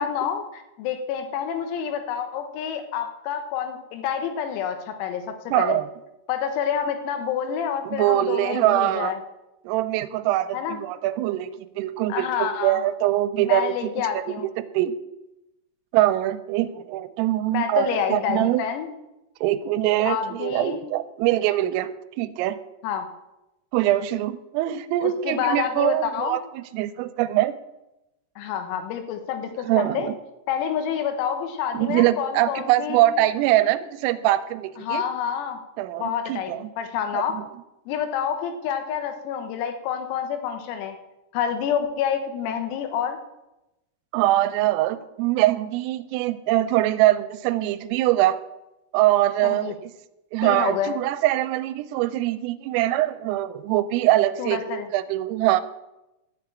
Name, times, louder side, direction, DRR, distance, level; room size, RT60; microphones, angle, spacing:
voice 1, 0.0-5.8 6.3-9.2 10.5-10.8 12.1-12.8 13.4-14.5 17.5-18.9 20.1-20.8 22.8-23.1 25.0-26.4 28.4-30.1 30.5-33.0 34.8-35.6 36.0-37.4 37.9-41.0 41.3-43.2 49.4-49.8 50.4-51.0 54.4-54.9, left 8 dB, 90° left, 7 dB, 4.0 m, -28 dB
voice 2, 5.5-5.9 7.8-9.1 9.6-14.2 14.7-14.9 15.9-18.6 19.4-21.9 22.2-22.6 23.7-27.6 29.6-30.1 31.7-35.0 35.8-36.7 37.1-37.4 44.1-48.4 48.9-49.9 50.3-54.6 54.9-55.6, right 14 dB, 85° right, 12 dB, 3.2 m, -23 dB
12.0 x 6.9 x 8.8 m, 0.95 s
omnidirectional pair, 5.9 m